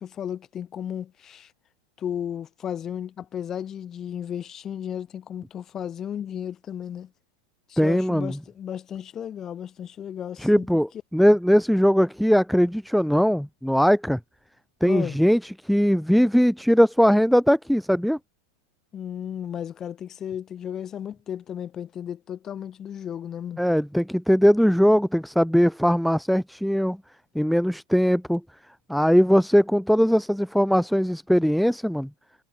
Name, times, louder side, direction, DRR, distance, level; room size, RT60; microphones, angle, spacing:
voice 1, 0.0-1.5 2.0-7.1 7.7-10.7 14.8-15.2 18.9-23.6, left 9 dB, 15° left, 4.8 m, -34 dB
voice 2, 7.8-8.4 10.4-14.2 14.8-18.2 23.6-27.0 27.3-28.4 28.9-32.1, equal, ahead, 1.3 m, -20 dB
supercardioid pair, 175°, 2 cm